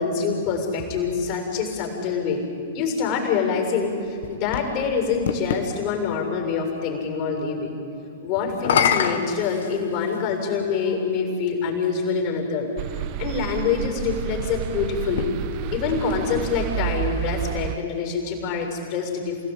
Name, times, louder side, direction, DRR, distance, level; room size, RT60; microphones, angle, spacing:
voice 1, 0.0-2.5 2.7-7.8 8.2-15.3 15.7-19.4, left 5 dB, 45° left, 2 dB, 7.0 m, -25 dB
sound 1, 3.8-5.7 8.5-10.3 11.2-11.3 15.0-16.6, left 8 dB, 65° left, 1.7 m, -26 dB
sound 2, 12.8-17.8, right 12 dB, 45° right, 0.9 m, -30 dB
28.0 x 17.0 x 9.5 m, 2.6 s
hypercardioid pair, 110°, 0 cm